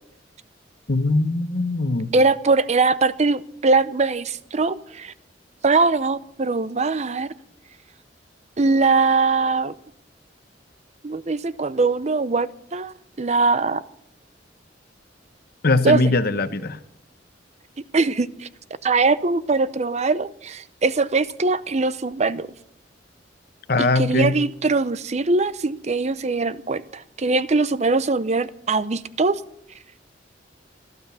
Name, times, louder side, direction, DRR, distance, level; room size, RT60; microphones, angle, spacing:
voice 1, 0.9-2.1 15.6-16.8 23.7-24.4, left 2 dB, 55° left, 11 dB, 1.0 m, -21 dB
voice 2, 2.1-5.1 5.6-7.3 8.6-9.7 11.0-13.8 15.8-16.1 17.9-18.5 18.8-22.5 24.0-29.4, right 3 dB, 40° right, 16 dB, 0.6 m, -21 dB
15.0 x 12.0 x 6.9 m, 0.72 s
head